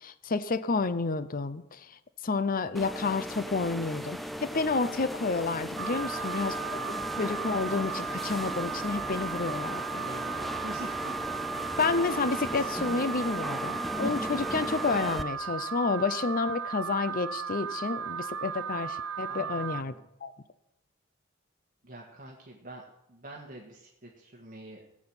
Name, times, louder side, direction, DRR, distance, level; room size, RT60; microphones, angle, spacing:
voice 1, 0.0-1.8 2.2-6.8 7.2-10.1 11.8-20.0 20.2-20.3, left 4 dB, 40° left, 14 dB, 0.6 m, -30 dB
sound 1, 2.7-15.2, equal, ahead, 0.5 m, -37 dB
Alarm, 5.8-19.8, right 6 dB, 85° right, 0.5 m, -36 dB
voice 2, 6.1-7.0 10.0-11.2 19.3-20.1 21.8-22.8 23.1-24.8, right 1 dB, 40° right, -2 dB, 1.7 m, -45 dB
18.0 x 6.2 x 8.8 m, 0.88 s
head